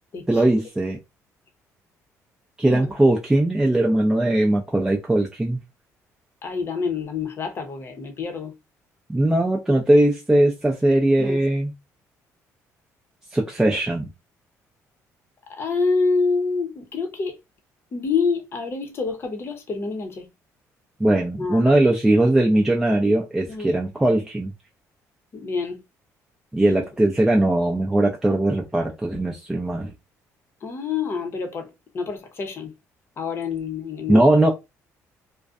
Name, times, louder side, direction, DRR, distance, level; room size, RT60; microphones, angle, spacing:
voice 1, 0.3-1.0 2.6-5.6 9.1-11.7 13.3-14.1 21.0-24.5 26.5-29.9 34.1-34.5, right 1 dB, 10° right, 0.4 m, -20 dB
voice 2, 6.4-8.5 11.2-11.4 15.5-17.4 17.9-20.3 21.4-21.7 23.5-23.7 25.3-25.8 30.6-32.7 33.2-34.3, left 4 dB, 40° left, 0.7 m, -27 dB
2.5 x 2.1 x 2.3 m
cardioid pair, 110°, 6 cm